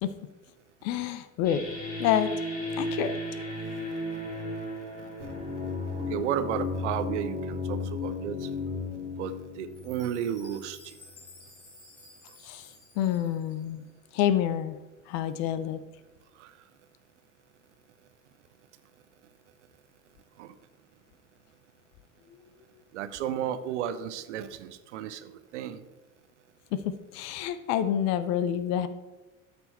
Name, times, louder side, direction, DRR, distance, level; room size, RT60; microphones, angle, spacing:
voice 1, 0.8-1.6 2.0-2.3 2.8-3.2 12.4-12.7 13.0-13.9 14.1-14.8 15.1-15.8 26.7-28.9, left 10 dB, 40° left, 13 dB, 0.6 m, -28 dB
sound 1, 1.4-10.8, left 2 dB, 20° left, 3.1 m, -34 dB
voice 2, 5.0-5.3 6.1-8.5 9.2-10.9 16.4-16.5 20.4-20.5 22.9-25.8, right 9 dB, 60° right, 12 dB, 0.7 m, -33 dB
Chime, 9.7-13.9, left 2 dB, 75° left, 2.5 m, -54 dB
13.0 x 4.4 x 4.3 m, 1.1 s
figure-of-eight pair, 75°, 41 cm